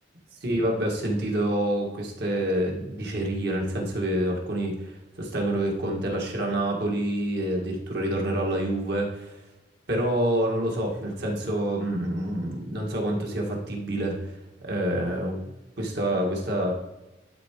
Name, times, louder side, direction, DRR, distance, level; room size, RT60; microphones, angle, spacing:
voice 1, 0.4-9.4 9.9-14.2 14.6-15.4 15.8-16.7, right 1 dB, 65° right, 0 dB, 1.8 m, -27 dB
11.5 x 4.8 x 3.1 m, 1.0 s
head